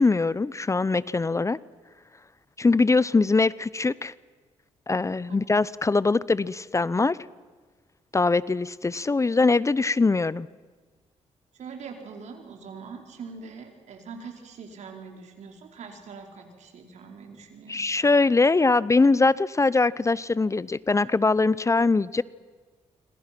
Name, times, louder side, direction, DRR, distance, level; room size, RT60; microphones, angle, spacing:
voice 1, 0.0-1.6 2.6-4.1 4.9-7.2 8.1-10.5 17.7-22.2, left 3 dB, 25° left, 19 dB, 0.7 m, -22 dB
voice 2, 11.5-17.9, right 5 dB, 70° right, 3 dB, 4.6 m, -43 dB
27.0 x 25.0 x 6.1 m, 1.4 s
supercardioid pair, 65°, 12 cm